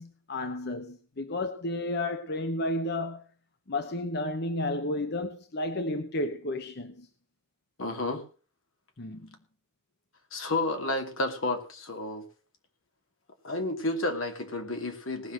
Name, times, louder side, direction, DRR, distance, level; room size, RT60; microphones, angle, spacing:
voice 1, 0.0-3.2 3.7-7.1 9.0-9.3, left 1 dB, 55° left, 0.9 m, -32 dB
voice 2, 7.8-8.2 10.3-12.3 13.4-15.3, left 2 dB, 85° left, 2.7 m, -31 dB
19.0 x 6.4 x 6.3 m
head